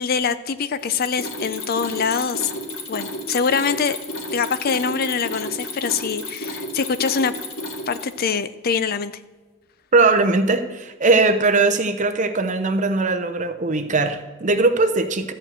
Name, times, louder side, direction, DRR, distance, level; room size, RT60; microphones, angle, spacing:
voice 1, 0.0-2.5 2.9-4.0 4.3-7.3 7.9-9.1, left 6 dB, 45° left, 13 dB, 0.4 m, -24 dB
Mechanisms, 0.8-8.2, left 1 dB, 75° left, 2.1 m, -32 dB
voice 2, 9.9-15.3, right 3 dB, 35° right, 9 dB, 0.7 m, -19 dB
13.0 x 4.5 x 8.0 m, 1.3 s
head